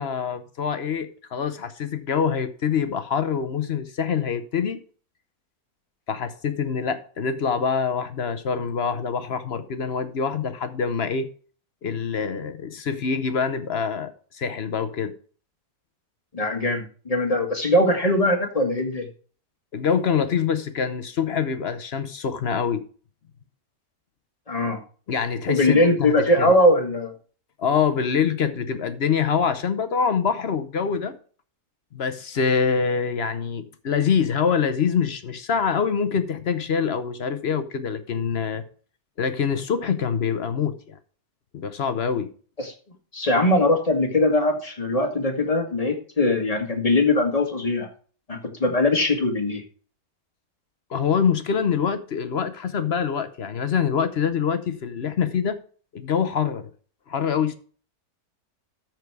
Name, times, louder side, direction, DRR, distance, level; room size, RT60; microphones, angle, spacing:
voice 1, 0.0-4.8 6.1-11.3 11.8-15.1 19.7-22.8 25.1-26.5 27.6-31.1 31.9-38.6 39.2-41.0 41.5-42.3 50.9-55.6 55.9-56.7 57.1-57.5, left 6 dB, 50° left, 0.9 m, -25 dB
voice 2, 16.3-19.1 24.5-24.8 25.5-27.1 42.6-42.7 43.1-47.9 48.3-49.6, left 1 dB, 25° left, 1.7 m, -21 dB
13.5 x 4.7 x 4.7 m
omnidirectional pair, 1.6 m